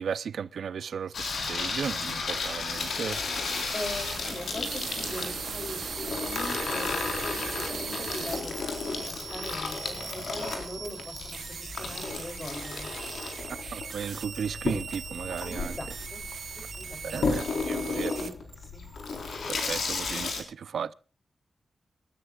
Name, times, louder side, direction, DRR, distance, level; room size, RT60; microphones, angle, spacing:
voice 1, 0.0-3.6 13.7-15.8 17.0-18.1 19.5-20.9, right 7 dB, 90° right, 0.6 m, -35 dB
Water tap faucet / Sink (filling or washing), 1.1-20.4, left 4 dB, 80° left, 4.2 m, -34 dB
sound 1, 2.7-18.5 18.8-20.4, right 6 dB, 60° right, 0.9 m, -40 dB
voice 2, 3.7-12.9 15.4-16.2 16.6-18.3 18.6-18.8, left 1 dB, 20° left, 3.2 m, -41 dB
26.5 x 13.5 x 2.4 m
wide cardioid pair, 170°, 0 cm